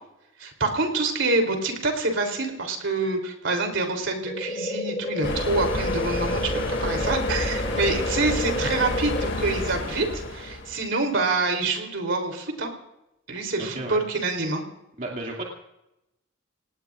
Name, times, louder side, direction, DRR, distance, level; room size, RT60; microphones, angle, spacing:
voice 1, 0.4-12.7 13.3-14.6, right 3 dB, 70° right, 4 dB, 3.5 m, -26 dB
sound 1, 4.3-9.3, left 1 dB, 25° left, 1.0 m, -31 dB
sound 2, 5.2-10.8, left 2 dB, 65° left, 2.5 m, -29 dB
voice 2, 13.6-14.0 15.0-15.4, right 2 dB, 45° right, -1 dB, 2.6 m, -33 dB
28.5 x 18.5 x 2.6 m, 0.88 s
head